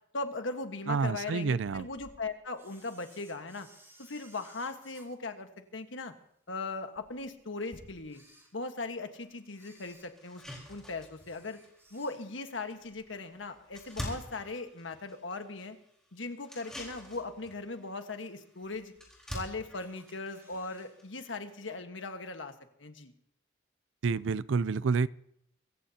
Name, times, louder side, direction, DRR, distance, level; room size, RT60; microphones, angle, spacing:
voice 1, 0.1-3.7 4.0-6.1 6.5-8.2 8.5-10.4 10.7-11.6 11.9-15.8 16.1-18.9 19.3-22.5 22.8-23.1, left 3 dB, 85° left, 7 dB, 1.4 m, -39 dB
voice 2, 0.9-1.9 24.0-25.1, right 5 dB, 80° right, 19 dB, 0.4 m, -28 dB
sound 1, 1.6-2.8 3.1-3.2 3.4-3.5 3.7-4.8 5.7-5.8 6.1-6.2 6.9-8.3 9.1-11.4 11.7-12.1 12.5-13.6, equal, 50° left, 7.7 m, -62 dB
Camera, 2.5-6.1 6.6-6.7 7.4-7.5 8.0-9.0 9.5-12.5 12.9-13.1 13.5-14.5 14.9-15.0 15.9-16.0 16.6-17.0 17.4-17.5 17.7-17.8 18.0-18.1 18.8-19.4 19.8-20.9 21.2-21.3 21.6-21.7, right 1 dB, 15° right, 3.4 m, -60 dB
sound 2, 9.1-9.2 9.7-9.8 10.2-21.8, equal, 5° left, 4.1 m, -47 dB
24.5 x 15.0 x 2.9 m, 0.74 s
head